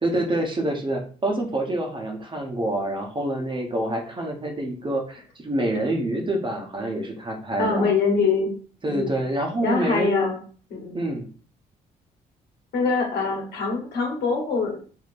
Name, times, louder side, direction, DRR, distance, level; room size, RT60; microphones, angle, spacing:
voice 1, 0.0-7.9 8.8-10.3 10.9-11.2, right 1 dB, 30° right, 1 dB, 0.9 m, -26 dB
voice 2, 7.6-8.5 8.9-9.1 9.6-10.4 10.7-10.9 12.7-14.8, left 4 dB, 75° left, 0 dB, 1.2 m, -24 dB
3.0 x 2.7 x 2.6 m, 0.41 s
supercardioid pair, 60°, 17 cm